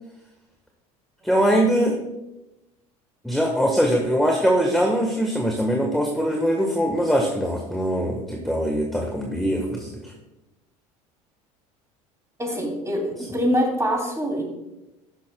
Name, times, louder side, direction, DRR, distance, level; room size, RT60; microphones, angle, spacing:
voice 1, 1.2-1.9 3.2-10.1, equal, ahead, 0 dB, 1.3 m, -22 dB
voice 2, 12.4-14.4, equal, 15° right, 2 dB, 2.8 m, -24 dB
16.0 x 6.2 x 2.2 m, 0.95 s
hypercardioid pair, 75°, 19 cm